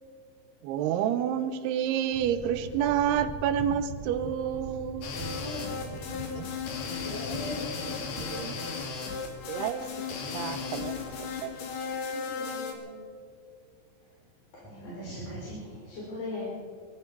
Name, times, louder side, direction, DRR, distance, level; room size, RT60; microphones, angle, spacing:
voice 1, 0.6-5.1 6.4-6.5 8.3-8.6 9.5-11.0 11.4-11.5, right 9 dB, 90° right, 2.9 m, -29 dB
sound 1, 2.1-8.3, right 1 dB, 20° right, 2.1 m, -42 dB
sound 2, 5.0-12.7, left 5 dB, 85° left, 4.0 m, -35 dB
voice 2, 5.4-6.7 7.0-8.5 12.0-13.1, left 2 dB, 15° left, 3.8 m, -41 dB
voice 3, 14.5-16.5, left 1 dB, 45° left, 4.7 m, -38 dB
22.5 x 14.0 x 4.6 m
omnidirectional pair, 4.5 m